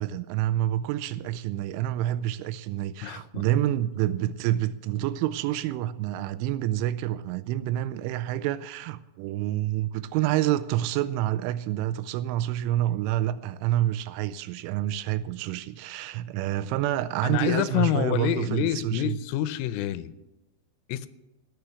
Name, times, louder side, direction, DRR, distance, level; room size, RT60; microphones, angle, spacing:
voice 1, 0.0-19.2, right 13 dB, 85° right, 2.9 m, -28 dB
voice 2, 3.0-3.5 17.2-20.1 20.9-21.1, left 13 dB, 85° left, 3.2 m, -27 dB
16.0 x 6.3 x 8.0 m
omnidirectional pair, 5.7 m